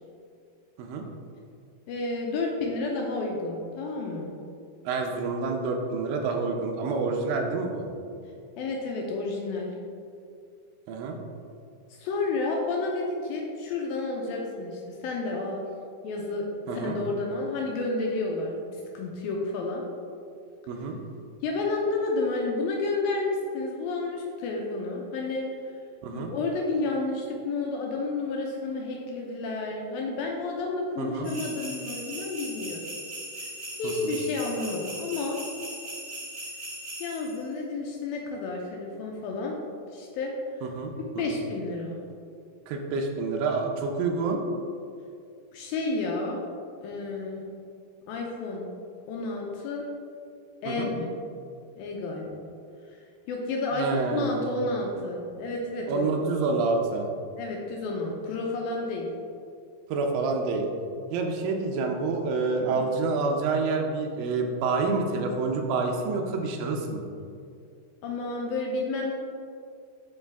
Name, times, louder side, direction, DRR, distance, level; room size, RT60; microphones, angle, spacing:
voice 1, 1.9-4.3 8.6-9.7 11.9-15.7 16.0-16.5 16.7-19.8 21.4-25.5 26.1-32.8 33.4-33.5 33.8-35.4 37.0-39.6 39.9-40.3 41.2-42.0 45.5-46.4 46.8-47.4 48.1-48.7 49.1-49.9 50.6-51.2 51.8-52.5 52.9-53.0 53.3-56.1 57.3-59.1 62.7-62.8 68.0-69.1, left 3 dB, 85° left, -1 dB, 2.2 m, -31 dB
voice 2, 4.8-7.9 10.9-11.2 16.7-17.0 20.7-21.0 26.0-26.3 31.0-31.3 34.0-34.2 40.6-40.9 41.3-41.4 42.7-44.4 50.7-50.9 53.8-54.5 55.9-57.1 59.9-60.7 61.1-67.1, right 4 dB, 85° right, 2 dB, 2.0 m, -28 dB
sound 1, 31.2-37.4, right 1 dB, 60° right, 1.6 m, -39 dB
8.6 x 4.8 x 3.4 m, 2.4 s
omnidirectional pair, 4.8 m